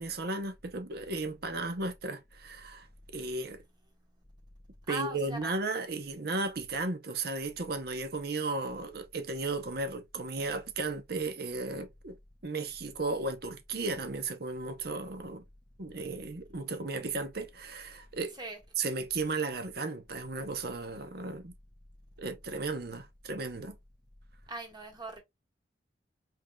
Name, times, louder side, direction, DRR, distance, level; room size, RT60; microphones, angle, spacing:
voice 1, 0.0-2.9 3.1-3.6 4.9-12.2 12.4-15.4 15.8-18.4 18.8-21.5 22.2-23.8, right 3 dB, 60° right, 0.8 m, -35 dB
voice 2, 4.9-5.5 18.4-18.6 24.5-25.2, right 3 dB, 25° right, 1.7 m, -39 dB
5.4 x 3.7 x 2.3 m
head